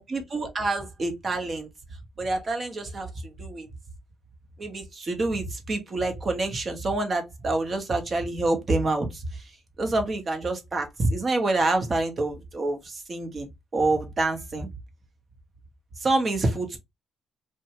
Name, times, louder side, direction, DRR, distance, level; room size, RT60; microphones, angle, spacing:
voice 1, 0.0-1.7 2.2-3.7 4.6-9.5 9.8-14.7 16.0-16.8, right 2 dB, 40° right, 0.9 m, -27 dB
2.6 x 2.2 x 2.9 m
cardioid pair, 90°, 0 cm